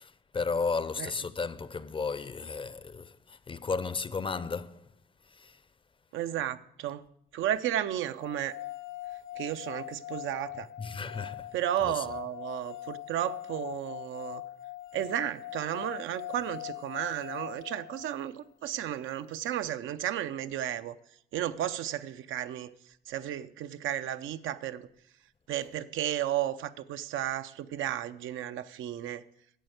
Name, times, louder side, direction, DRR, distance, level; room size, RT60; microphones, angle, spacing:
voice 1, 0.0-4.9 5.2-5.6 10.8-11.5 11.8-12.1, left 4 dB, 25° left, 0.5 m, -34 dB
voice 2, 6.1-7.0 7.3-8.6 9.4-10.7 11.5-14.4 14.9-20.9 21.3-22.7 23.1-24.9 25.5-29.2, right 11 dB, 80° right, 0.6 m, -33 dB
sound 1, 8.2-18.3, left 15 dB, 75° left, 0.5 m, -42 dB
11.5 x 7.8 x 7.8 m
cardioid pair, 90°, 20 cm